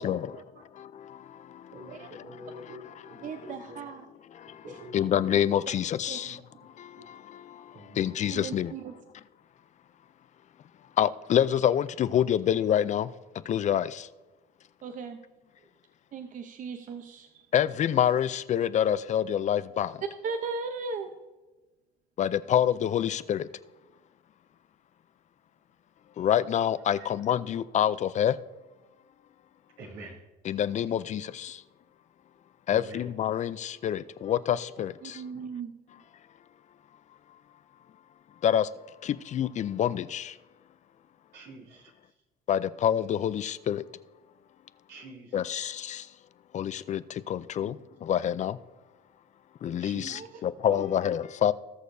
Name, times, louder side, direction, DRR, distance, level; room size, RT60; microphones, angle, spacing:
voice 1, 0.0-0.4 0.7-3.3 4.3-6.4 6.8-8.7 11.0-13.1 13.5-14.1 17.5-20.0 22.2-23.5 26.2-28.4 30.4-31.6 32.7-35.2 38.4-38.7 39.0-40.4 42.5-43.8 45.3-46.1 46.5-48.6 49.6-51.5, left 10 dB, 45° left, 0.4 m, -27 dB
voice 2, 1.7-2.8 3.1-3.8 4.6-5.4 6.2-6.4 7.7-8.0 27.0-27.1 29.8-30.2 32.7-33.0 41.3-41.9 44.9-45.4 47.6-47.8 49.8-50.5, right 1 dB, 80° right, 2.9 m, -45 dB
voice 3, 3.2-4.1 4.7-4.8 6.1-6.2 8.3-8.9 14.8-15.2 16.1-17.5 20.2-21.1 35.0-35.7 50.1-50.3 50.7-50.8, right 4 dB, 50° right, 0.8 m, -37 dB
19.0 x 6.5 x 2.7 m
cardioid pair, 110°, 17 cm